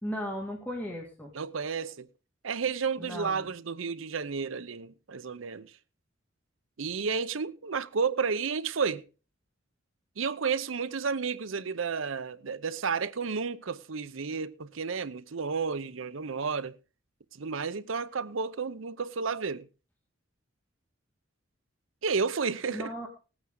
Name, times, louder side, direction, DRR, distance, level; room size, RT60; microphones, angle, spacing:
voice 1, 0.0-1.3 3.0-3.5 22.7-23.1, equal, 10° left, 2.2 m, -36 dB
voice 2, 1.3-2.1 2.4-5.7 6.8-9.1 10.2-16.8 17.3-19.7 22.0-22.9, right 5 dB, 85° right, 0.7 m, -32 dB
18.5 x 9.0 x 3.8 m
head